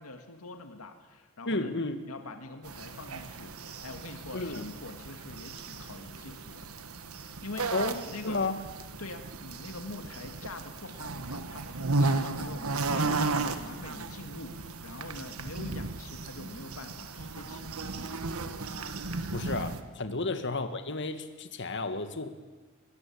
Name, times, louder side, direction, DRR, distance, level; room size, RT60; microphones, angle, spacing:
voice 1, 0.0-6.7 7.1-8.4 9.0-17.9 20.1-20.3, left 2 dB, 90° left, 6 dB, 2.0 m, -45 dB
voice 2, 1.5-2.0 4.3-4.6 7.7-8.6 19.3-22.3, left 3 dB, 55° left, 9 dB, 1.8 m, -32 dB
sound 1, 2.6-19.8, right 3 dB, 90° right, 1.5 m, -35 dB
21.0 x 20.5 x 8.6 m, 1.3 s
head